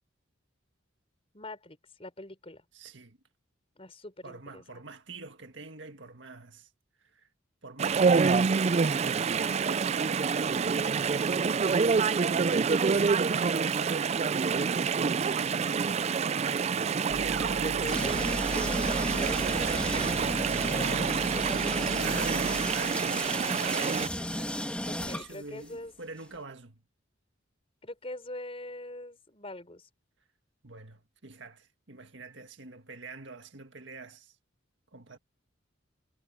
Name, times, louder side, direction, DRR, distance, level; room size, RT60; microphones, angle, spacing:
voice 1, 1.3-2.6 3.8-4.6 17.6-22.5 24.8-25.9 27.8-29.9, left 1 dB, 30° left, 5.1 m, -43 dB
voice 2, 2.7-3.2 4.2-6.7 7.0-7.3 7.6-11.7 12.7-16.0 22.0-24.6 25.0-26.8 30.6-34.4 34.9-35.2, right 3 dB, 60° right, 1.9 m, -46 dB
Chatter / Stream, 7.8-24.1, right 5 dB, 30° right, 0.3 m, -27 dB
sound 1, 17.1-23.6, right 3 dB, 90° right, 1.0 m, -38 dB
sound 2, 17.9-25.8, left 1 dB, 5° left, 1.8 m, -35 dB
head